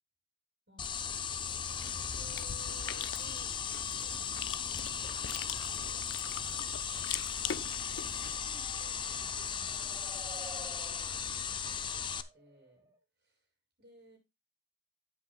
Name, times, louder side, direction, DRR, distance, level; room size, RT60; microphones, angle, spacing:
sound 1, 0.8-12.2, left 7 dB, 25° left, 0.5 m, -37 dB
Chewing mastication, 1.4-8.3, left 8 dB, 75° left, 0.5 m, -43 dB
voice 1, 1.6-6.1 7.1-12.0 12.3-12.9 13.2-13.5 13.8-14.2, right 1 dB, 60° right, 1 dB, 5.9 m, -59 dB
sound 2, 7.2-13.0, right 1 dB, 15° right, 1.5 m, -55 dB
17.0 x 6.1 x 2.2 m, 0.23 s
head